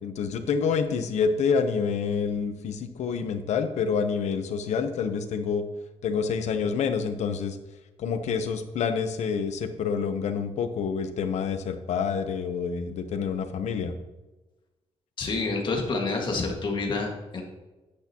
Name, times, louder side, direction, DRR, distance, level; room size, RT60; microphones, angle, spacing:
voice 1, 0.0-5.6 6.0-7.6 8.0-13.9, left 6 dB, 85° left, 9 dB, 0.9 m, -27 dB
voice 2, 15.2-17.4, left 3 dB, 45° left, 1 dB, 1.8 m, -28 dB
10.0 x 8.3 x 2.9 m, 1.1 s
wide cardioid pair, 150°, 11 cm